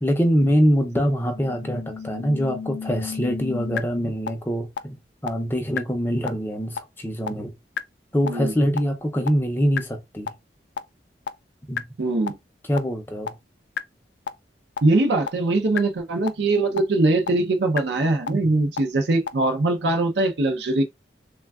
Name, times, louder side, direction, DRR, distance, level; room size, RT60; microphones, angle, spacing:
voice 1, 0.0-7.5 8.1-10.3 11.7-11.8 12.7-13.3, equal, 10° left, 0.4 m, -24 dB
sound 1, 1.3-3.8 4.3-4.4 4.8-4.9 5.3-5.4 5.8-5.9 6.3-6.4 6.8-6.9 7.3-7.4 7.8-7.9 8.3-8.4 8.8-8.9 9.3-9.4 9.8-9.9 10.3-10.4 10.8-10.9 11.3-11.4 11.8-11.9 12.3-12.4 12.8-12.9 13.3-13.4 13.8-13.9 14.3-14.4 14.8-14.9 15.3-15.4 15.8-15.9 16.3-16.4 16.8-16.9 17.3-17.4 17.8-17.9 18.3-18.4 18.8-18.9 19.3-19.4, left 7 dB, 80° left, 0.3 m, -29 dB
voice 2, 12.0-12.4 14.8-20.8, right 2 dB, 75° right, 0.5 m, -22 dB
3.3 x 2.2 x 2.3 m
head